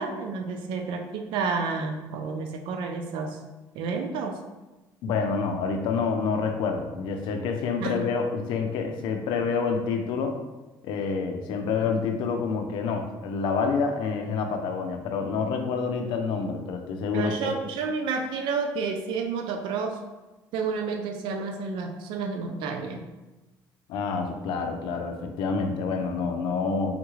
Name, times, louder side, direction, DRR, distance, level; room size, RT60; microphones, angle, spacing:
voice 1, 0.0-3.4 3.7-4.4 7.8-8.0 17.1-20.0 20.5-23.0, right 4 dB, 80° right, 4 dB, 0.4 m, -30 dB
voice 2, 5.0-10.4 10.8-17.5 23.9-26.9, left 5 dB, 80° left, 5 dB, 0.5 m, -28 dB
3.5 x 2.3 x 3.0 m, 1.1 s
cardioid pair, 120°, 8 cm